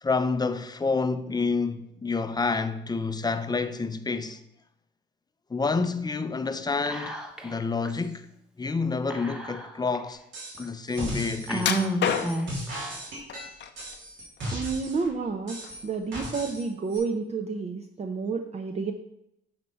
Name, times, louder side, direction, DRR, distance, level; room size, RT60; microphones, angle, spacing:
voice 1, 0.0-4.4 5.5-7.2 7.4-8.3 8.6-10.2 10.6-11.8, left 4 dB, 20° left, 0.6 m, -28 dB
Whispering, 6.9-7.6 7.9-8.0 9.1-10.0 10.6-10.7 11.5-12.7, right 1 dB, 5° right, 1.0 m, -31 dB
sound 1, 10.3-10.6 10.9-15.0 15.5-16.6 16.9-17.0, equal, 70° right, 3.2 m, -36 dB
sound 2, 11.6-12.6 13.3-14.0 14.4-15.3 15.6-15.8 16.4-16.5, left 8 dB, 65° left, 0.7 m, -29 dB
voice 2, 14.5-18.9, right 4 dB, 30° right, 0.6 m, -30 dB
8.7 x 4.3 x 5.4 m
cardioid pair, 90°, 20 cm